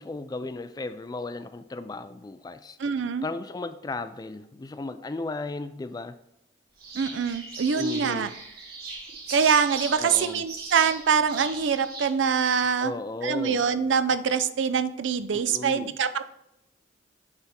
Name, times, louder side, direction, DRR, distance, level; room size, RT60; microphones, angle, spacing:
voice 1, 0.0-2.8 3.2-6.2 7.7-8.3 10.0-10.5 12.8-13.6 15.3-15.9, left 3 dB, 20° left, 11 dB, 0.3 m, -35 dB
voice 2, 2.8-3.2 6.9-8.3 9.3-12.9 13.2-16.2, right 6 dB, 80° right, 12 dB, 0.5 m, -24 dB
sound 1, 6.8-12.1, right 3 dB, 55° right, 1.8 m, -38 dB
9.5 x 3.5 x 4.3 m, 0.82 s
head